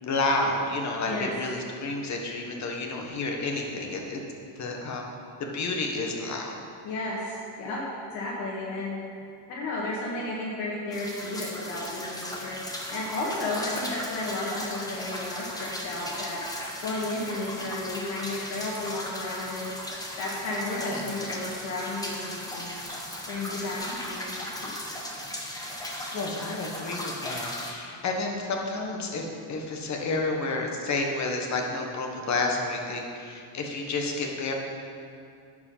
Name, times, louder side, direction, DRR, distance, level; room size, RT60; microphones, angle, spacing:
voice 1, 0.0-4.2 4.6-5.1 5.4-6.6 20.7-21.1 23.4-24.0 26.1-34.5, left 3 dB, 40° left, 1 dB, 1.3 m, -30 dB
voice 2, 6.8-7.8 8.1-9.0 9.5-12.6 12.9-16.4 16.8-19.7 20.2-22.8 23.3-24.8, left 2 dB, 85° left, -5 dB, 1.7 m, -33 dB
sound 1, 10.9-27.7, left 1 dB, 10° left, 1.0 m, -37 dB
10.5 x 5.0 x 5.6 m, 2.4 s
cardioid pair, 140°, 44 cm